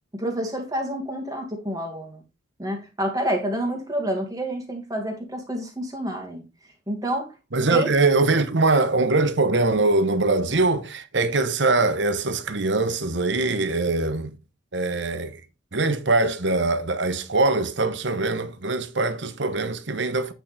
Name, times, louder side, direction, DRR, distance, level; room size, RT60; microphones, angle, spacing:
voice 1, 0.1-2.2 2.6-6.4 6.9-7.3 7.7-7.9, right 1 dB, 20° right, 2.0 m, -28 dB
voice 2, 7.5-14.3 14.7-15.4 15.7-20.3, right 3 dB, 65° right, 1.0 m, -22 dB
8.9 x 6.1 x 3.4 m
head